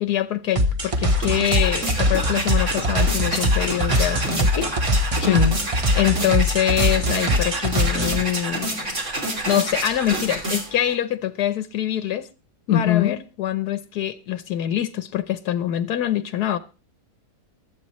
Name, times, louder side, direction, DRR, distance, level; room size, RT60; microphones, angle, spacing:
voice 1, 0.0-4.7 5.0-5.3 5.9-9.0 9.5-12.3 12.7-16.6, left 11 dB, 80° left, 1.3 m, -24 dB
sound 1, 0.6-8.2, left 1 dB, 25° right, 0.8 m, -22 dB
sound 2, 0.9-10.9, right 2 dB, 50° right, 3.1 m, -28 dB
voice 2, 5.2-5.6 12.7-13.2, left 10 dB, 65° left, 1.2 m, -19 dB
24.0 x 8.4 x 3.1 m
omnidirectional pair, 1.7 m